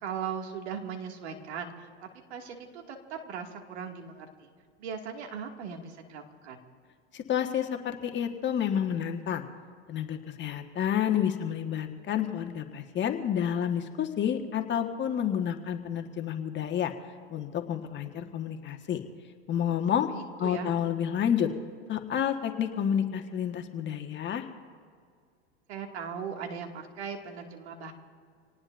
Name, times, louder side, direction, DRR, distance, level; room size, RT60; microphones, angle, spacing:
voice 1, 0.0-1.9 2.3-4.5 4.8-6.6 20.1-20.7 25.7-27.9, right 7 dB, 75° right, 3 dB, 2.3 m, -38 dB
voice 2, 7.1-9.4 9.9-16.9 17.3-19.0 19.5-20.1 20.4-21.5 21.9-24.5, left 9 dB, 35° left, 5 dB, 1.5 m, -29 dB
27.0 x 18.5 x 2.6 m, 2.1 s
hypercardioid pair, 90°, 34 cm